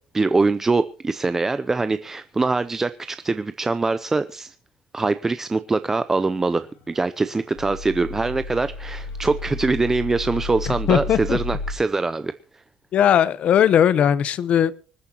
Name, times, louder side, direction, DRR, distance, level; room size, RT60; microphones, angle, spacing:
voice 1, 0.1-4.6 4.9-12.3, right 3 dB, 15° right, 0.5 m, -23 dB
sound 1, 6.5-11.7, left 3 dB, 80° left, 4.9 m, -33 dB
voice 2, 10.9-11.4 12.9-14.8, left 9 dB, 45° left, 0.8 m, -18 dB
25.0 x 9.8 x 2.9 m
cardioid pair, 140°, 3 cm